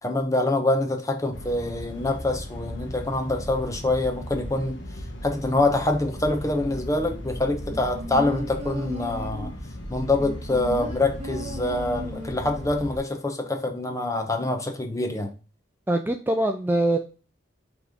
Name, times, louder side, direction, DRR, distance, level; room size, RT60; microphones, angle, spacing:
voice 1, 0.0-4.8 5.2-9.5 9.9-15.3, left 2 dB, 20° left, 4 dB, 1.0 m, -25 dB
sound 1, 1.3-13.0, equal, 80° left, 1.4 m, -37 dB
sound 2, 7.7-9.6 10.2-12.6 12.9-13.0, equal, 40° right, 1.8 m, -36 dB
voice 2, 15.9-17.0, right 1 dB, 10° right, 5 dB, 0.4 m, -23 dB
6.0 x 3.5 x 5.2 m, 0.35 s
head